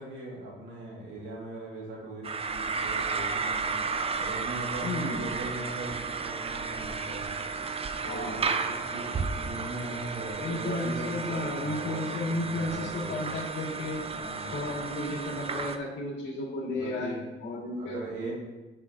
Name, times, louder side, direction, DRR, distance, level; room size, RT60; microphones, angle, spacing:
voice 1, 0.0-7.5 8.0-13.3 14.1-14.7 16.7-17.2 17.8-18.3, right 2 dB, 80° right, -4 dB, 2.3 m, -40 dB
sound 1, 2.2-15.8, right 5 dB, 30° right, 0.5 m, -33 dB
voice 2, 4.8-5.2 8.0-8.4 10.4-14.1 14.5-17.1 17.4-18.3, left 2 dB, 65° left, -2 dB, 2.2 m, -33 dB
8.5 x 5.6 x 2.8 m, 1.1 s
cardioid pair, 90°, 20 cm